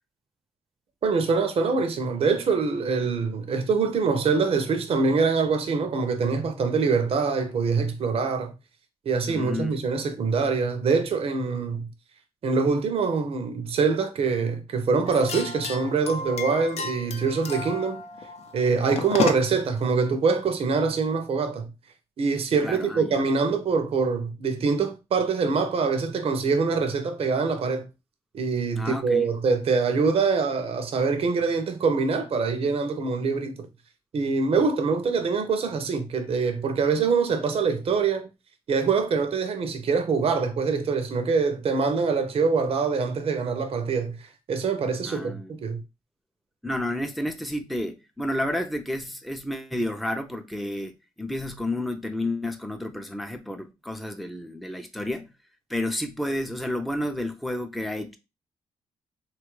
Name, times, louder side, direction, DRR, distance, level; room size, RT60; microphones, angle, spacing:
voice 1, 1.0-8.5 9.1-11.9 12.4-18.0 18.5-21.7 22.2-27.9 28.3-33.7 34.1-38.3 38.7-45.8, right 4 dB, 55° right, 0.6 m, -24 dB
voice 2, 9.3-9.8 22.6-23.2 28.7-29.3 45.0-45.5 46.6-50.9 51.2-55.3 55.7-58.1, left 1 dB, ahead, 0.5 m, -31 dB
sound 1, 15.1-19.7, left 4 dB, 60° left, 0.6 m, -32 dB
3.0 x 2.3 x 3.1 m
supercardioid pair, 55°, 12 cm